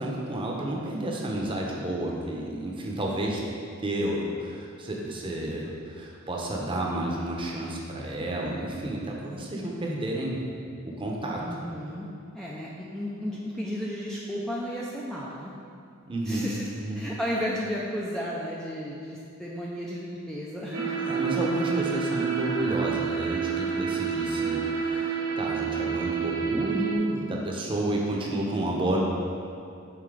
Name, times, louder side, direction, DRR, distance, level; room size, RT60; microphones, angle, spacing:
voice 1, 0.0-3.4 3.8-10.4 10.8-11.4 16.0-16.5 16.7-17.0 21.0-29.0, right 1 dB, 25° right, -2 dB, 0.8 m, -31 dB
voice 2, 11.4-12.1 12.3-15.5 16.2-16.7 16.9-21.0, equal, 5° left, -5 dB, 0.4 m, -33 dB
sound 1, 20.7-27.0, right 6 dB, 75° right, 0.9 m, -29 dB
5.8 x 4.1 x 4.8 m, 2.4 s
head